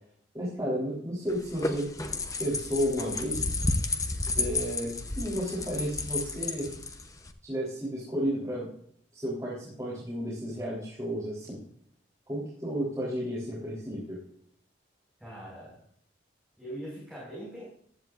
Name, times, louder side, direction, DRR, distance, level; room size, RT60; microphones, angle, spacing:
voice 1, 0.3-1.9 2.4-3.4 4.3-6.7 7.4-8.7 9.1-11.6 12.3-14.2, equal, 20° right, -8 dB, 4.0 m, -32 dB
sound 1, 1.3-7.3, left 3 dB, 20° left, 0.9 m, -32 dB
voice 2, 15.2-15.8 16.6-17.6, right 1 dB, ahead, -8 dB, 5.5 m, -41 dB
15.0 x 13.0 x 2.6 m, 0.64 s
head